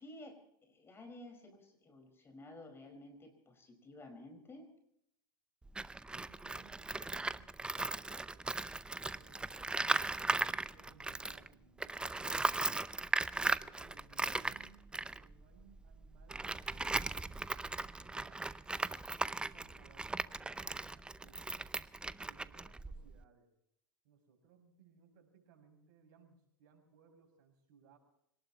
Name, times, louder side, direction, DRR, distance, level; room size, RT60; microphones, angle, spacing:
voice 1, 0.0-4.7, left 1 dB, 20° left, 6 dB, 5.0 m, -53 dB
Tools, 5.7-11.5 11.8-23.2, right 2 dB, 10° right, 0.6 m, -38 dB
voice 2, 6.1-7.5 7.8-9.6 10.6-12.5 13.1-18.6 19.4-21.7 22.2-23.5 24.0-28.0, right 6 dB, 60° right, 4 dB, 6.5 m, -65 dB
25.5 x 19.0 x 3.0 m, 0.76 s
hypercardioid pair, 100°, 11 cm